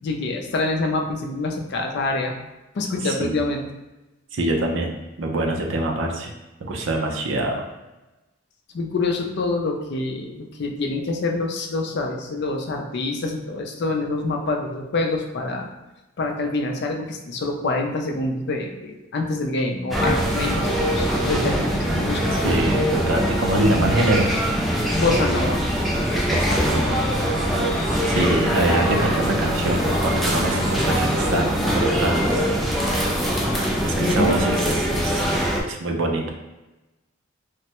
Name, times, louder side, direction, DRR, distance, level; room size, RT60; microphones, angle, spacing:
voice 1, 0.0-2.3 2.7-3.6 8.7-15.7 16.2-22.2 24.9-25.6 30.4-30.7 34.0-34.8, left 3 dB, 60° left, 2 dB, 0.4 m, -26 dB
voice 2, 3.0-3.4 4.3-6.3 6.6-7.6 22.4-24.3 26.2-27.1 28.1-32.4 33.8-35.3 35.6-36.3, right 1 dB, 80° right, 2 dB, 0.5 m, -24 dB
sound 1, 19.9-35.6, equal, ahead, 0.4 m, -22 dB
sound 2, 26.3-31.3, right 1 dB, 40° right, 0.7 m, -34 dB
3.2 x 2.1 x 2.9 m, 1.0 s
head